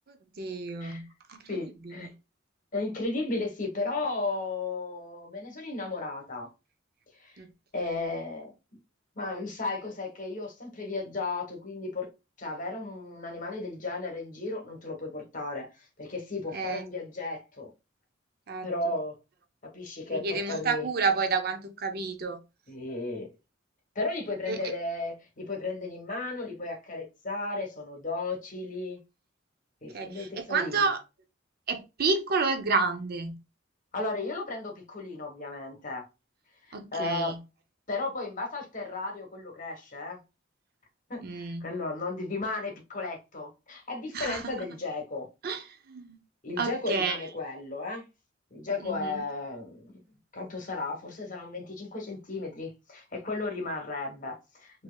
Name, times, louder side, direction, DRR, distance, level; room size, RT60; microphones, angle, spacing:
voice 1, 0.4-1.4 2.0-2.1 7.4-7.5 16.5-16.8 18.5-18.7 20.1-22.4 24.5-24.6 29.9-31.0 31.7-33.4 36.7-37.4 41.2-41.7 44.1-44.5 45.4-45.6 45.9-46.2 46.6-47.2 48.8-49.2, right 4 dB, 50° right, 0.6 m, -30 dB
voice 2, 1.5-2.1 2.7-6.5 7.2-7.4 7.7-8.5 9.1-12.1 12.4-17.7 18.6-19.2 19.6-20.9 22.7-23.3 23.9-29.0 29.8-30.9 33.9-36.0 36.7-37.4 37.9-40.2 41.1-45.3 46.4-48.0 48.5-49.9 50.3-54.8, left 3 dB, 45° left, 1.2 m, -34 dB
4.4 x 2.7 x 2.3 m
head